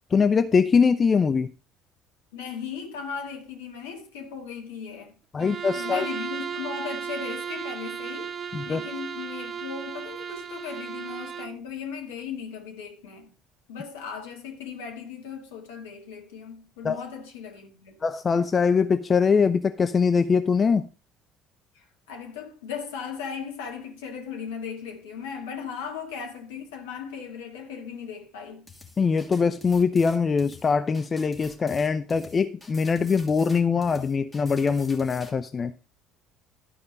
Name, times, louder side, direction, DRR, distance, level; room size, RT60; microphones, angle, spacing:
voice 1, 0.1-1.5 5.3-6.0 8.5-8.8 16.8-17.0 18.0-20.9 29.0-35.7, left 5 dB, 30° left, 0.6 m, -22 dB
voice 2, 2.3-8.3 8.6-13.3 13.7-18.0 21.8-28.7, left 6 dB, 70° left, 1.9 m, -37 dB
Bowed string instrument, 5.4-11.6, right 7 dB, 40° right, 0.4 m, -35 dB
sound 1, 28.7-35.3, left 2 dB, 15° left, 2.8 m, -48 dB
13.0 x 5.3 x 5.3 m
figure-of-eight pair, 55°, 0 cm